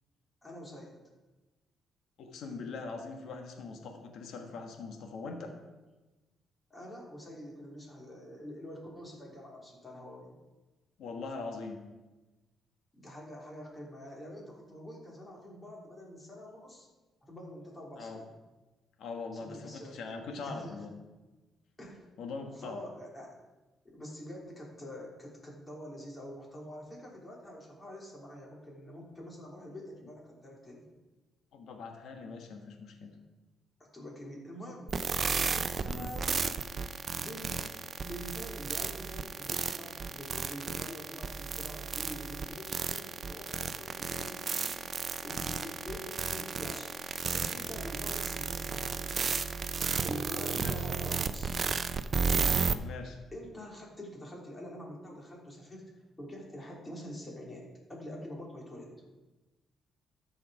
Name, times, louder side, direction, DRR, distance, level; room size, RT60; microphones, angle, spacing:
voice 1, 0.4-1.0 6.7-10.3 12.9-16.9 17.3-18.3 19.4-20.0 20.3-20.8 21.8-22.1 22.4-23.3 23.9-30.9 33.9-36.4 37.2-37.7 38.0-44.8 45.2-49.3 50.0-51.6 53.3-55.8 56.2-58.9, equal, 20° left, -2 dB, 3.2 m, -46 dB
voice 2, 2.2-5.5 11.0-11.8 18.0-18.2 19.0-20.9 22.2-22.8 31.5-33.2 35.9-36.1 50.5-50.9 52.8-53.2, left 4 dB, 75° left, 3 dB, 1.4 m, -42 dB
sound 1, 34.9-52.7, right 5 dB, 45° right, 0.5 m, -33 dB
13.5 x 5.1 x 4.9 m, 1.1 s
cardioid pair, 90°, 0 cm